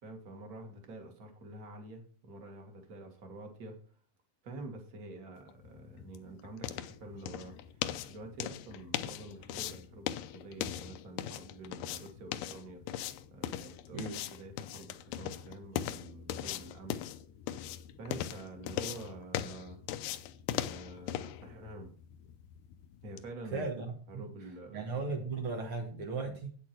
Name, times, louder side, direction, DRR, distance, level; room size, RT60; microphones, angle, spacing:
voice 1, 0.0-3.8 4.4-12.8 13.3-17.1 18.0-19.8 20.5-21.9 23.0-23.7 24.1-24.8 26.2-26.4, right 2 dB, 45° right, 3 dB, 1.2 m, -48 dB
sound 1, 5.5-23.3, left 11 dB, 80° left, 2.0 m, -40 dB
voice 2, 23.5-23.8 24.1-24.3 24.7-26.6, right 4 dB, 85° right, 2 dB, 1.1 m, -36 dB
8.9 x 8.2 x 4.5 m, 0.43 s
omnidirectional pair, 4.4 m